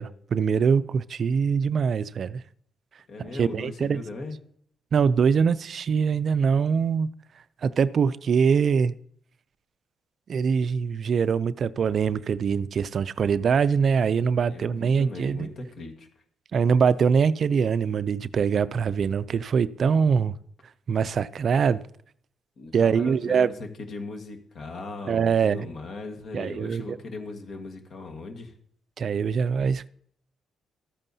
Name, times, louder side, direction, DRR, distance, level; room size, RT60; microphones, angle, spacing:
voice 1, 0.0-2.4 3.2-4.0 4.9-7.1 7.6-8.9 10.3-15.5 16.5-20.4 20.9-21.8 22.7-23.5 25.1-25.7 26.3-27.0 29.0-29.9, right 6 dB, 55° right, 0.3 m, -23 dB
voice 2, 3.1-4.4 14.5-16.1 22.6-23.5 23.8-28.5, left 3 dB, 55° left, 1.5 m, -38 dB
13.0 x 9.0 x 2.7 m
cardioid pair, 90°, 0 cm